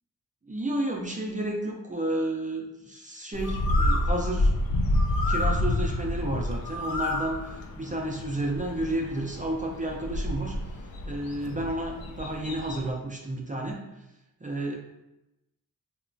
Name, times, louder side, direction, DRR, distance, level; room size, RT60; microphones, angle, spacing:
voice 1, 0.5-4.5 5.3-10.8 11.0-13.8 14.4-14.8, right 1 dB, 20° right, 0 dB, 0.4 m, -31 dB
Bird, 3.3-12.9, left 1 dB, 65° left, 0.5 m, -28 dB
2.9 x 2.2 x 2.5 m, 0.93 s
cardioid pair, 40°, 38 cm